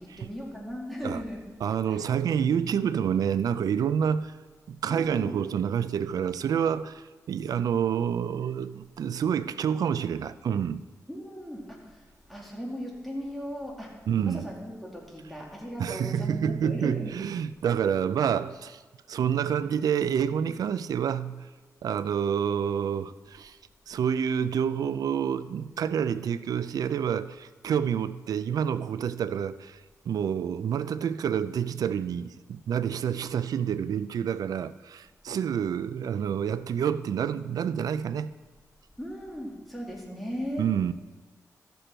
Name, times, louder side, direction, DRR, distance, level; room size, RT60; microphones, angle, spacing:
voice 1, 0.0-1.5 1.9-2.0 2.6-2.7 4.9-5.4 11.1-13.9 14.3-17.1 17.6-17.7 39.0-40.7, equal, ahead, 2.5 m, -37 dB
voice 2, 1.6-4.3 4.7-10.8 14.1-14.5 15.8-18.8 19.1-21.5 21.8-23.6 23.9-29.8 30.1-38.3 40.6-40.9, right 8 dB, 85° right, 0.4 m, -28 dB
13.5 x 6.8 x 4.4 m
wide cardioid pair, 95°, 6 cm